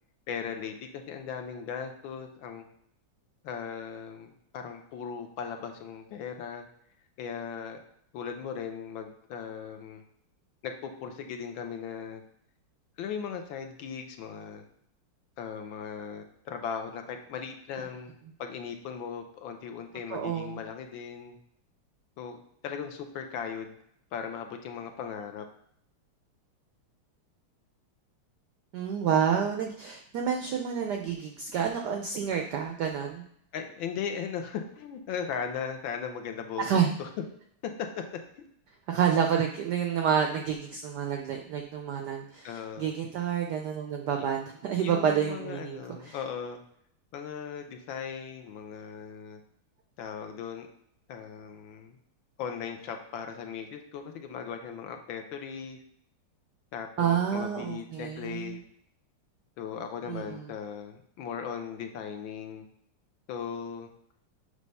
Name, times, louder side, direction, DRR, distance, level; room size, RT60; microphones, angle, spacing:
voice 1, 0.3-2.6 3.4-6.6 7.2-7.8 8.1-10.0 10.6-12.2 13.0-14.6 15.4-18.1 18.4-21.4 22.2-23.8 24.1-25.5 33.5-36.7 37.0-37.2 37.6-38.0 38.4-38.5 42.4-42.9 44.2-44.3 44.8-46.6 47.1-49.4 50.0-50.7 51.1-52.0 52.4-55.8 56.7-58.6 59.6-62.6 63.3-63.9, left 7 dB, 70° left, 5 dB, 1.3 m, -38 dB
voice 2, 20.1-20.6 28.7-33.2 36.6-36.9 38.9-46.2 57.0-58.6 60.1-60.5, right 8 dB, 80° right, 3 dB, 0.9 m, -29 dB
6.5 x 3.3 x 5.3 m, 0.69 s
omnidirectional pair, 2.4 m